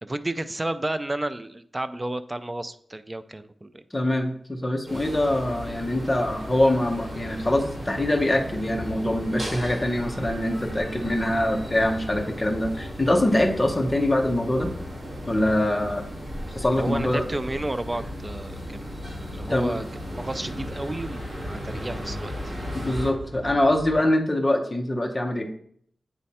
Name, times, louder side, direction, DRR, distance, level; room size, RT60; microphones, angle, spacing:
voice 1, 0.0-3.8 16.7-19.0 19.3-22.5, right 1 dB, 20° right, 11 dB, 0.3 m, -32 dB
voice 2, 3.9-14.7 15.3-16.0 16.5-17.2 19.5-19.8 22.7-25.5, left 1 dB, 15° left, 3 dB, 0.8 m, -24 dB
sound 1, 4.9-23.1, equal, 35° right, 1.9 m, -35 dB
sound 2, 14.0-24.0, right 2 dB, 65° right, 2.3 m, -46 dB
8.1 x 3.3 x 4.2 m, 0.64 s
wide cardioid pair, 155°, 0 cm